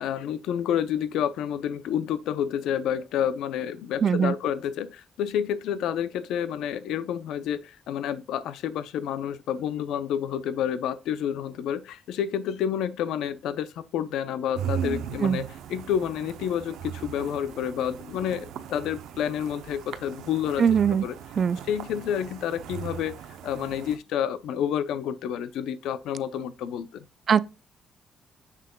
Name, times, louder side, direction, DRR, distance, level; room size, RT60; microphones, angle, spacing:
voice 1, 0.0-20.7 21.0-21.1 21.7-27.1, left 9 dB, 85° left, 0.6 m, -29 dB
voice 2, 4.0-4.3 15.2-15.4 20.6-21.0 21.4-21.6 27.3-27.4, right 7 dB, 50° right, 0.4 m, -21 dB
sound 1, 14.6-24.0, right 9 dB, 85° right, 0.7 m, -38 dB
7.5 x 6.4 x 2.2 m
cardioid pair, 90°, 0 cm